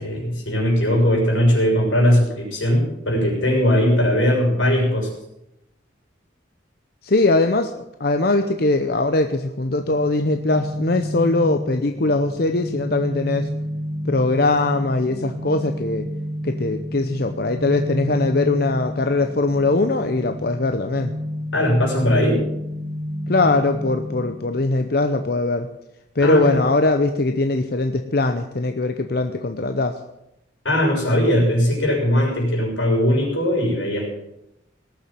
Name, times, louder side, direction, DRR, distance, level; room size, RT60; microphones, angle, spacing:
voice 1, 0.0-5.1 21.5-22.4 26.2-26.6 30.6-34.1, equal, 90° left, -1 dB, 6.1 m, -19 dB
voice 2, 7.0-13.5 14.0-16.1 16.4-21.1 23.3-25.7 26.2-30.0, left 2 dB, 55° left, 7 dB, 0.7 m, -21 dB
sound 1, 9.8-24.5, equal, 75° left, 3.4 m, -30 dB
18.5 x 7.2 x 7.3 m, 0.85 s
head